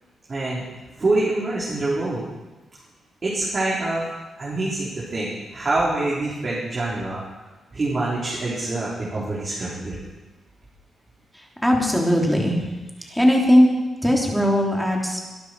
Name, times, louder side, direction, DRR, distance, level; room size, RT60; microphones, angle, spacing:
voice 1, 0.3-0.7 1.0-2.2 3.2-4.1 4.4-7.2 7.7-10.0 13.0-13.2, right 2 dB, 30° right, -7 dB, 4.3 m, -25 dB
voice 2, 11.3-12.6 13.1-13.7 14.0-15.2, equal, ahead, -1 dB, 3.2 m, -19 dB
23.5 x 12.5 x 4.8 m, 1.2 s
wide cardioid pair, 135°, 0 cm